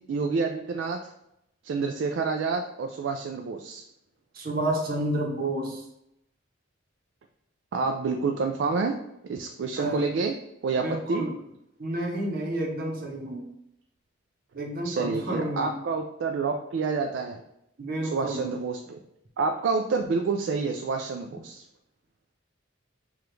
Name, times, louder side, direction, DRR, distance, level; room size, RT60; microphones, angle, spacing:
voice 1, 0.1-1.0 1.6-3.8 7.7-9.0 9.2-10.3 10.6-11.2 14.8-17.4 18.0-19.0 19.4-21.6, right 4 dB, 65° right, 3 dB, 0.3 m, -28 dB
voice 2, 4.3-5.9 9.8-10.0 10.8-11.3 11.8-13.4 14.5-15.7 17.8-18.5, right 1 dB, 50° right, 1 dB, 0.8 m, -30 dB
4.9 x 2.3 x 3.1 m, 0.81 s
head